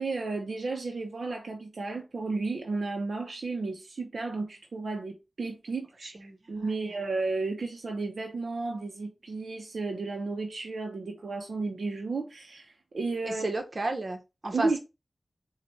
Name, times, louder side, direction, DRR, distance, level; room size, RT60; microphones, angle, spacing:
voice 1, 0.0-13.4 14.5-14.8, right 3 dB, 75° right, 0.8 m, -33 dB
voice 2, 6.0-6.4 6.8-6.9 13.2-14.8, right 2 dB, 55° right, 1.0 m, -33 dB
4.4 x 2.4 x 4.1 m
wide cardioid pair, 55°, 0 cm